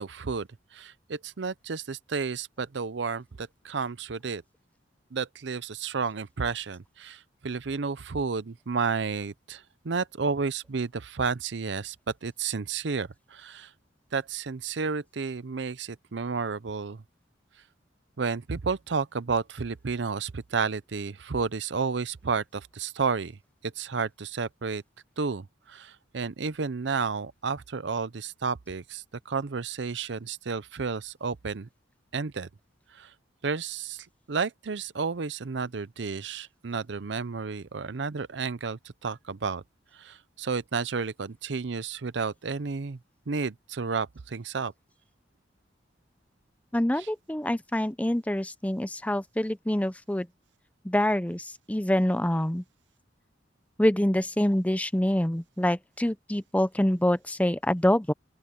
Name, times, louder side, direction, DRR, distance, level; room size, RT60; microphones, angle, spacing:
voice 1, 0.0-4.4 5.1-13.7 14.1-17.0 18.2-24.8 25.2-31.7 32.1-32.5 32.9-33.1 33.4-39.6 39.9-43.0 43.3-44.7 47.0-47.1, right 5 dB, 70° right, 0.6 m, -32 dB
voice 2, 46.7-50.3 50.8-52.6 53.8-58.1, left 1 dB, 10° left, 0.6 m, -26 dB
open air
head